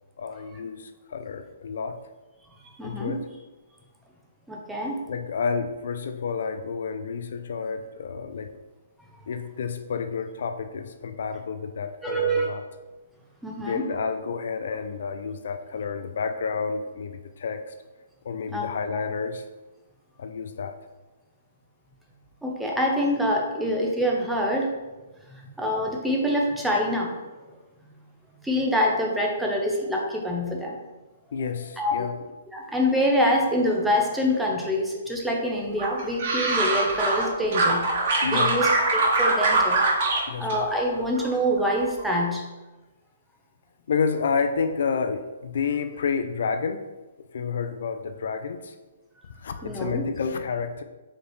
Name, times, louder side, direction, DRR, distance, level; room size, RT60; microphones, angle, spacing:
voice 1, 0.2-2.0 2.8-3.2 5.1-8.5 9.3-12.6 13.6-17.7 18.2-19.5 20.2-20.8 31.3-32.2 38.2-38.6 40.3-40.7 43.9-46.9 47.3-48.7 49.4-50.8, left 5 dB, 65° left, 8 dB, 0.3 m, -30 dB
voice 2, 2.8-3.2 4.5-5.0 12.0-12.5 13.4-13.9 18.5-18.7 22.4-24.7 25.3-27.2 28.4-30.8 31.8-32.1 32.5-37.9 38.3-39.8 40.4-42.4 49.6-50.0, equal, 5° right, -2 dB, 0.6 m, -25 dB
sound 1, 35.8-37.2 37.5-40.2 40.5-41.3 41.6-42.0, right 2 dB, 50° right, 1.2 m, -23 dB
4.8 x 3.2 x 3.1 m, 1.2 s
hypercardioid pair, 155°, 0 cm